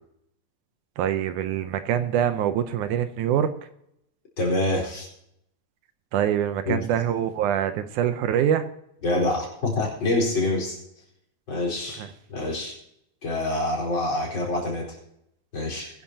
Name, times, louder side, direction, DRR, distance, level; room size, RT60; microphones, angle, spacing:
voice 1, 1.0-3.5 6.1-8.7 12.0-12.1, right 10 dB, 80° right, 10 dB, 2.2 m, -24 dB
voice 2, 4.4-5.1 6.6-6.8 9.0-10.8 11.5-12.0 12.3-12.8 13.2-15.0 15.5-15.9, left 2 dB, 40° left, -2 dB, 4.8 m, -26 dB
22.5 x 10.0 x 2.8 m, 0.77 s
omnidirectional pair, 3.6 m